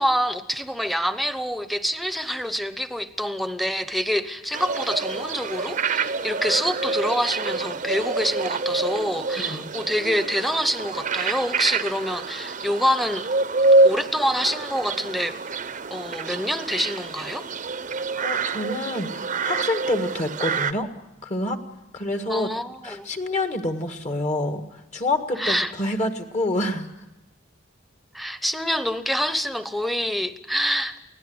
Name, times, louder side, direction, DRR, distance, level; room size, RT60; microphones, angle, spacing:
voice 1, 0.0-13.3 13.8-15.4 15.9-17.5 22.3-23.1 25.4-25.7 28.1-31.0, equal, ahead, 1.0 m, -26 dB
sound 1, 4.5-20.7, right 3 dB, 45° right, 0.8 m, -26 dB
voice 2, 9.4-9.7 18.2-20.9 21.2-21.6 21.9-22.5 22.8-26.9, left 2 dB, 40° left, 1.8 m, -27 dB
24.0 x 17.0 x 8.0 m
head